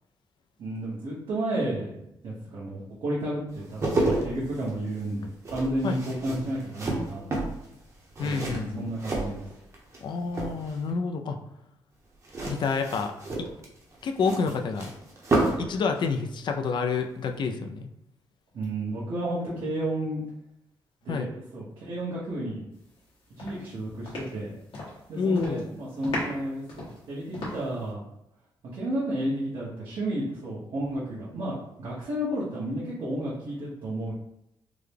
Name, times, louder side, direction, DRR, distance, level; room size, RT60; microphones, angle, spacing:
voice 1, 0.6-2.0 2.2-7.2 8.2-9.5 18.5-20.2 21.0-22.6 23.4-24.5 25.1-28.0 28.7-34.1, right 1 dB, 65° right, -8 dB, 1.1 m, -32 dB
sound 1, 3.5-10.0 10.3-10.9 12.2-15.7 16.0-16.2, right 2 dB, 35° right, 0.9 m, -30 dB
voice 2, 8.2-8.8 10.0-11.4 12.4-13.1 14.0-14.9 15.6-17.9 21.1-21.3 25.2-25.6, left 5 dB, 60° left, 5 dB, 0.4 m, -28 dB
sound 2, 22.9-23.1 23.4-25.0 25.3-25.7 26.0-27.9, left 1 dB, 75° left, 1.3 m, -37 dB
3.6 x 2.2 x 3.3 m, 0.82 s
cardioid pair, 125°, 9 cm